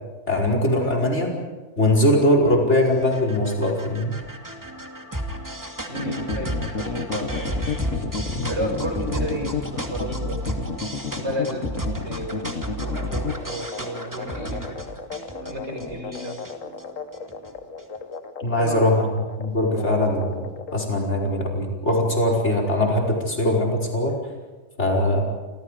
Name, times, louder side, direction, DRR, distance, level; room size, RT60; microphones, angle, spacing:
voice 1, 0.3-1.3 1.8-4.2 8.3-8.5 18.4-20.4 20.7-24.2 24.8-25.2, left 1 dB, 55° left, 2 dB, 5.5 m, -21 dB
sound 1, 2.4-18.0, equal, 15° right, 2.5 m, -33 dB
sound 2, 5.9-20.7, left 5 dB, 75° left, 1.7 m, -32 dB
voice 2, 5.9-7.6 8.5-10.4 11.1-14.8 15.4-16.3 18.6-18.9, right 1 dB, 55° right, 3 dB, 6.0 m, -32 dB
29.5 x 26.0 x 5.0 m, 1.3 s
omnidirectional pair, 1.4 m